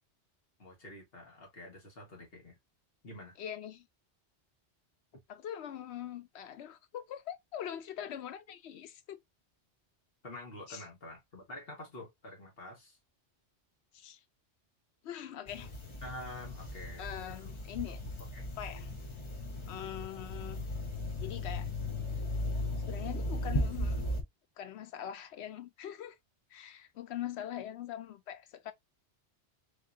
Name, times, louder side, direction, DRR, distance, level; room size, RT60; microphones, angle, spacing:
voice 1, 0.6-2.6 3.0-3.4 5.1-5.2 10.2-13.0 16.0-17.6 18.2-18.5, left 1 dB, 60° left, 1.5 m, -48 dB
voice 2, 3.4-3.9 5.3-9.2 10.7-10.8 13.9-14.2 15.0-15.7 17.0-18.0 18.6-18.9 19.7-20.6 21.2-21.7 22.9-24.1 24.6-26.2 26.5-28.7, left 10 dB, 75° left, 0.9 m, -42 dB
sound 1, 15.5-24.2, left 1 dB, 30° left, 0.7 m, -37 dB
3.6 x 3.1 x 2.5 m
omnidirectional pair, 1.2 m